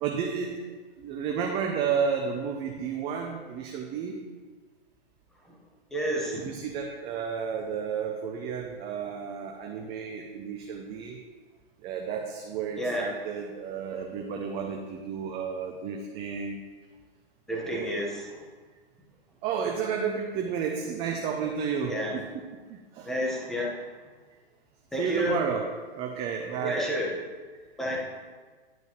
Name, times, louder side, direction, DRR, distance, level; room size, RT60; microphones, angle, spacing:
voice 1, 0.0-0.6 1.0-4.2 6.3-11.2 11.8-16.6 17.6-18.0 19.4-22.2 22.7-23.1 25.0-25.7 26.0-26.8, right 6 dB, 20° right, 1 dB, 0.5 m, -32 dB
voice 2, 5.9-6.5 12.8-13.1 17.5-18.4 21.9-22.2 23.0-23.8 24.9-25.3 26.6-27.1 27.8-28.0, equal, ahead, -3 dB, 1.2 m, -30 dB
11.0 x 5.3 x 3.1 m, 1.4 s
hypercardioid pair, 125°, 30 cm